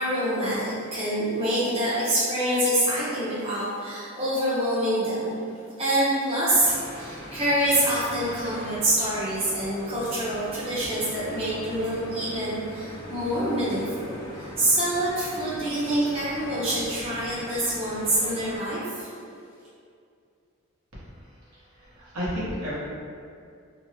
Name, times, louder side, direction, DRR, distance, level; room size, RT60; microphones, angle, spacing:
voice 1, 0.0-19.1, right 1 dB, 25° right, -11 dB, 0.7 m, -26 dB
sound 1, 6.6-18.6, equal, 20° left, 0.3 m, -41 dB
voice 2, 21.7-22.8, equal, 85° right, -9 dB, 0.8 m, -31 dB
2.7 x 2.1 x 2.8 m, 2.4 s
head